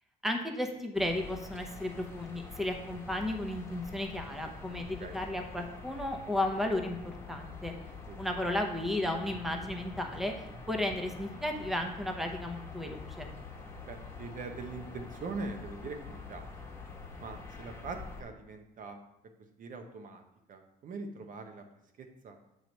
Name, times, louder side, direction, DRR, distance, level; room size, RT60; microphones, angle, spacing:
voice 1, 0.2-7.7 8.2-13.3, left 1 dB, ahead, 3 dB, 0.7 m, -34 dB
sound 1, 0.9-18.2, left 4 dB, 15° left, 1.2 m, -46 dB
voice 2, 13.8-16.5 17.2-19.0 19.6-20.2 20.5-21.6 22.2-22.4, right 3 dB, 50° right, 6 dB, 0.7 m, -42 dB
7.9 x 3.0 x 5.2 m, 0.86 s
cardioid pair, 110°, 17 cm